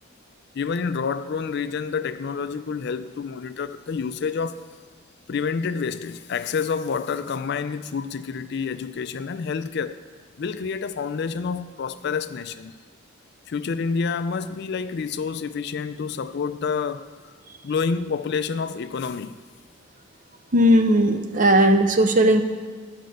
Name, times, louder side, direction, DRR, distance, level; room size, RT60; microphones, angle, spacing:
voice 1, 0.5-4.6 5.3-10.0 10.4-12.7 13.5-17.1 17.6-19.3, left 5 dB, 50° left, 0.3 m, -28 dB
voice 2, 20.5-22.4, equal, 35° right, 0.6 m, -17 dB
10.5 x 5.2 x 7.7 m
head